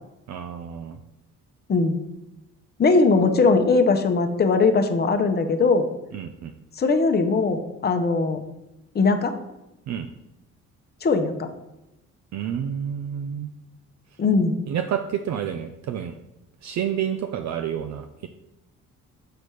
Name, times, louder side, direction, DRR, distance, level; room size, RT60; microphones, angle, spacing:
voice 1, 0.3-1.0 6.1-6.5 9.9-10.1 12.3-13.5 14.7-16.1 16.6-18.3, right 9 dB, 65° right, 7 dB, 0.5 m, -29 dB
voice 2, 2.8-5.9 6.8-8.4 8.9-9.3 11.0-11.5 14.2-14.6, left 4 dB, 35° left, 6 dB, 0.8 m, -20 dB
6.8 x 4.2 x 4.7 m, 0.93 s
cardioid pair, 90°, 30 cm